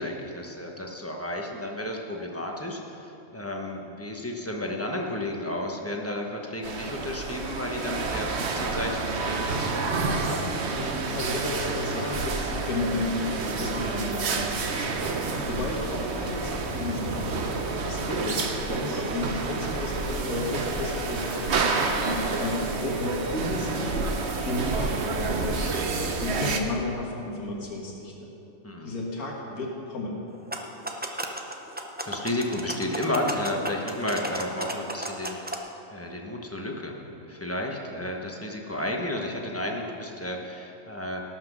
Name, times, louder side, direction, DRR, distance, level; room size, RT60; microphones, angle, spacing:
voice 1, 0.0-2.8 3.3-10.4 28.6-28.9 32.0-35.4 35.9-41.2, left 1 dB, 10° left, 0 dB, 1.0 m, -32 dB
sound 1, 6.6-26.6, right 3 dB, 55° right, 1.1 m, -29 dB
voice 2, 10.8-17.4 17.8-21.6 21.9-22.0 22.4-24.0 24.5-28.3 28.8-30.2, left 2 dB, 90° left, -2 dB, 2.0 m, -33 dB
sound 2, 30.3-35.6, right 1 dB, 15° right, 0.4 m, -34 dB
18.0 x 5.9 x 6.2 m, 2.8 s
omnidirectional pair, 1.5 m